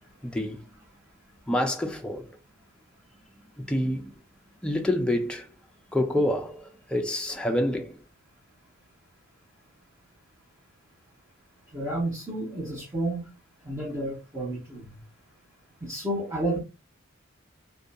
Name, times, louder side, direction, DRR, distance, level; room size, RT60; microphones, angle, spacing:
voice 1, 0.2-0.6 1.5-2.3 3.7-4.1 4.6-5.5 5.9-8.0, left 1 dB, 5° left, 0.3 m, -27 dB
voice 2, 11.7-13.3 13.7-14.9 15.8-16.6, right 1 dB, 15° right, 0.7 m, -31 dB
2.6 x 2.2 x 2.5 m
head